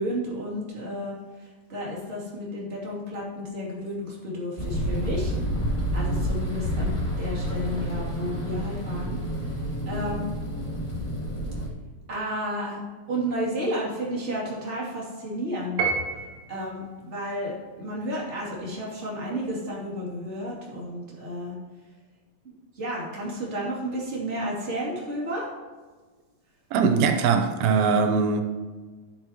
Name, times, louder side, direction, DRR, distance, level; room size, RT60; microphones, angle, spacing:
voice 1, 0.0-5.3 5.9-9.2 9.5-10.4 12.1-12.8 13.1-15.8 16.1-21.6 22.4-25.5, equal, 20° right, 2.6 m, -32 dB
sound 1, 4.6-11.7, equal, 15° left, 1.2 m, -29 dB
Piano, 15.8-16.7, right 5 dB, 75° right, 2.9 m, -28 dB
voice 2, 26.7-28.4, right 5 dB, 90° right, 2.7 m, -21 dB
14.0 x 7.6 x 3.0 m
omnidirectional pair, 4.1 m